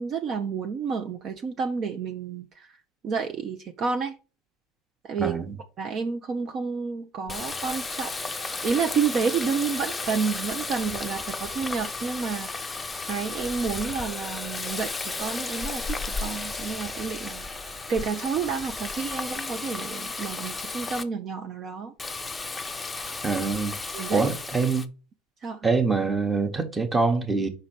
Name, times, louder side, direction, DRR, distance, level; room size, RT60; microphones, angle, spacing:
voice 1, 0.0-2.7 3.0-4.1 5.0-5.4 5.8-12.7 13.0-21.9 23.9-24.3 25.4-25.6, right 5 dB, 40° right, 0.8 m, -30 dB
voice 2, 5.2-5.6 23.2-23.7 24.1-24.8 25.6-27.5, right 4 dB, 15° right, 1.1 m, -24 dB
Water tap faucet, 7.3-21.0 22.0-24.9, left 3 dB, 10° left, 0.6 m, -34 dB
5.4 x 3.9 x 5.8 m
supercardioid pair, 120°, 0 cm